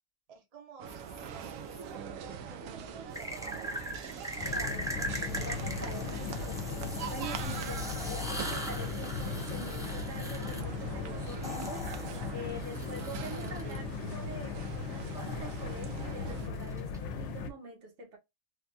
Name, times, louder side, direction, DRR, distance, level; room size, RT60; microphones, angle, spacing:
voice 1, 0.3-3.5 3.9-4.2, right 5 dB, 35° right, 0.7 m, -52 dB
sound 1, 0.8-16.5, right 5 dB, 85° right, 1.0 m, -43 dB
sound 2, 0.9-1.8 3.1-13.8 15.2-17.0, equal, 5° right, 0.3 m, -41 dB
sound 3, 4.4-17.5, left 5 dB, 70° left, 0.8 m, -38 dB
voice 2, 4.4-6.6 7.1-11.9 12.3-18.2, right 1 dB, 65° right, 1.3 m, -45 dB
3.3 x 2.2 x 2.6 m
omnidirectional pair, 1.3 m